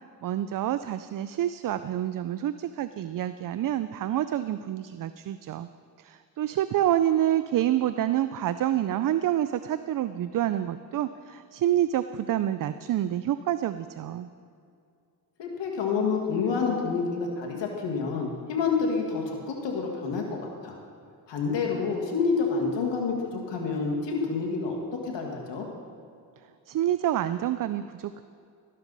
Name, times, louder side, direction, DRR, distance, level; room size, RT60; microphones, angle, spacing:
voice 1, 0.2-5.7 6.0-14.3 26.7-28.2, right 12 dB, 50° right, 12 dB, 0.5 m, -27 dB
voice 2, 15.4-20.8 21.3-25.7, left 5 dB, 75° left, 0 dB, 1.9 m, -28 dB
13.5 x 12.0 x 4.0 m, 2.4 s
cardioid pair, 70°, 43 cm